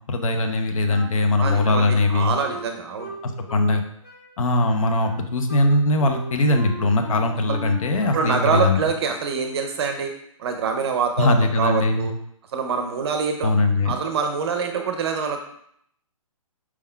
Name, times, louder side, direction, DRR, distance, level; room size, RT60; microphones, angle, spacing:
voice 1, 0.1-2.3 3.5-3.8 4.4-8.8 11.2-12.1 13.4-13.9, left 2 dB, 70° left, 5 dB, 0.7 m, -20 dB
Wind instrument woodwind instrument, 0.9-3.8 4.0-8.5, equal, 30° left, 0.9 m, -38 dB
voice 2, 1.4-3.1 8.1-10.1 10.4-12.1 12.5-13.5 13.8-15.4, right 5 dB, 50° right, 5 dB, 0.5 m, -25 dB
4.6 x 3.5 x 2.2 m, 0.69 s
hypercardioid pair, 145°, 18 cm